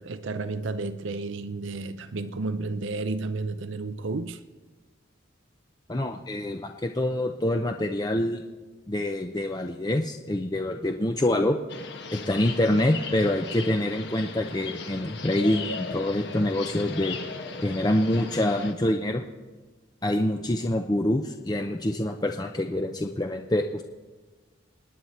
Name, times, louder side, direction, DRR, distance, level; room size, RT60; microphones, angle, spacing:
voice 1, 0.0-4.4, right 3 dB, 75° right, 0.6 m, -32 dB
voice 2, 5.9-8.4 8.9-11.6 12.1-17.2 17.6-19.2 20.0-23.8, left 1 dB, 20° left, 0.6 m, -26 dB
sound 1, 11.7-18.7, left 4 dB, 60° left, 1.3 m, -37 dB
28.5 x 9.6 x 4.3 m
head